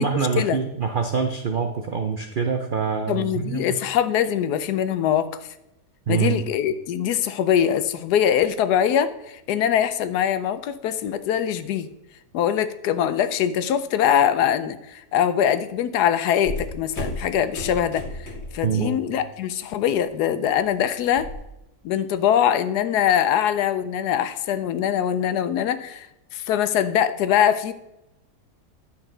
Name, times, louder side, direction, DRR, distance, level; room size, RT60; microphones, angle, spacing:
voice 1, 0.0-3.8 6.1-6.4 18.6-19.0, right 6 dB, 80° right, 5 dB, 0.4 m, -25 dB
voice 2, 3.1-5.3 6.1-11.9 12.3-18.0 18.5-21.3 21.8-26.1 26.3-27.7, left 9 dB, 75° left, 12 dB, 1.1 m, -22 dB
sound 1, 16.4-18.7 19.0-19.4 19.7-21.4, left 1 dB, 40° left, 1.9 m, -34 dB
9.8 x 7.0 x 3.8 m, 0.89 s
omnidirectional pair, 1.8 m